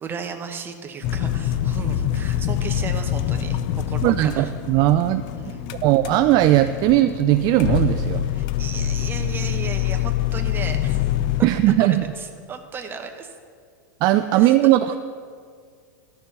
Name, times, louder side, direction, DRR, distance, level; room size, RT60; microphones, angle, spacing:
voice 1, 0.0-4.5 5.3-5.7 8.3-11.0 11.8-13.3 14.3-14.8, right 5 dB, 20° right, 5 dB, 1.0 m, -35 dB
sound 1, 1.0-11.4, left 11 dB, 45° left, 0.6 m, -25 dB
voice 2, 4.0-5.2 5.8-8.3 11.4-12.0 14.0-15.0, right 14 dB, 40° right, 9 dB, 0.4 m, -18 dB
12.5 x 6.9 x 5.4 m, 2.1 s
supercardioid pair, 130°, 10 cm